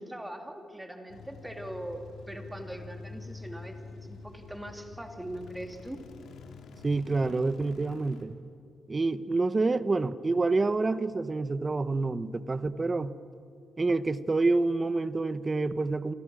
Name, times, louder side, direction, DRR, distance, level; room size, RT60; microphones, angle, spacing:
voice 1, 0.0-6.0, right 1 dB, 10° right, 4 dB, 3.0 m, -41 dB
sound 1, 1.1-8.2, left 4 dB, 85° left, 2.8 m, -47 dB
voice 2, 6.8-8.3 8.9-13.1 13.8-16.1, right 3 dB, 30° right, 12 dB, 1.1 m, -27 dB
28.5 x 26.5 x 6.4 m, 2.3 s
cardioid pair, 90°, 0 cm